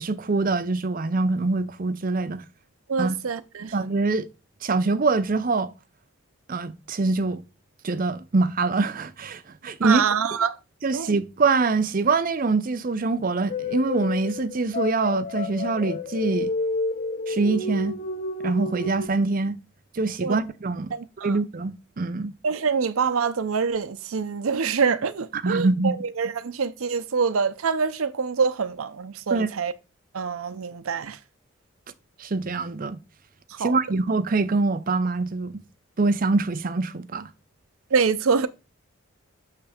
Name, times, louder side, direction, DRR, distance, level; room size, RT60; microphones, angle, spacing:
voice 1, 0.0-2.4 3.0-3.2 3.7-4.3 4.6-5.7 6.5-7.4 7.8-10.0 10.8-16.5 17.3-17.9 18.4-19.5 19.9-20.9 21.2-22.3 25.3-26.0 29.3-29.5 32.2-33.0 33.6-35.6 36.0-37.3, right 3 dB, 40° right, 0.5 m, -24 dB
voice 2, 2.9-3.7 9.8-10.6 10.9-11.1 20.2-20.4 20.9-21.4 22.4-29.7 30.1-31.2 33.5-33.8 37.9-38.5, right 5 dB, 90° right, 0.6 m, -25 dB
sound 1, 13.5-19.1, left 3 dB, 35° left, 0.5 m, -30 dB
7.0 x 3.3 x 4.9 m
head